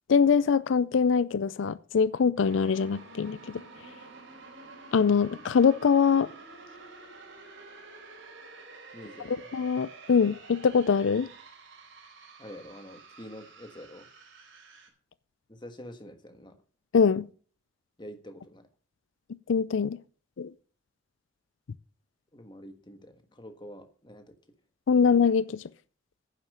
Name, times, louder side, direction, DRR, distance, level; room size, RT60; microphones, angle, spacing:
voice 1, 0.1-3.4 4.9-6.3 9.3-11.3 16.9-17.3 19.5-20.0 20.4-20.5 24.9-25.6, left 6 dB, 85° left, 0.4 m, -23 dB
sound 1, 2.4-14.9, right 3 dB, 80° right, 3.8 m, -49 dB
voice 2, 8.9-9.5 12.4-14.1 15.5-16.5 18.0-18.7 22.3-24.3, equal, 25° left, 1.5 m, -46 dB
10.5 x 7.3 x 6.8 m
head